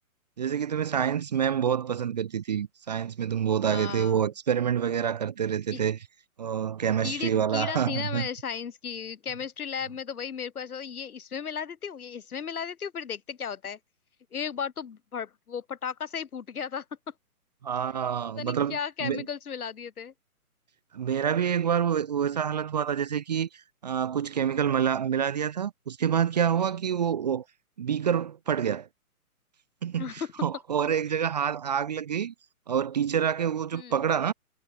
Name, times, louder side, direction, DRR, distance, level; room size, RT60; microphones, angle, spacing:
voice 1, 0.4-6.0 6.4-8.3 17.6-19.3 20.9-27.4 27.8-28.9 29.8-32.3 32.7-34.3, right 8 dB, 30° right, 0.6 m, -27 dB
voice 2, 3.7-4.1 5.7-5.8 7.0-13.8 14.3-16.8 18.4-20.1 30.0-30.3 33.7-34.0, left 7 dB, 75° left, 1.9 m, -35 dB
hypercardioid pair, 150°, 44 cm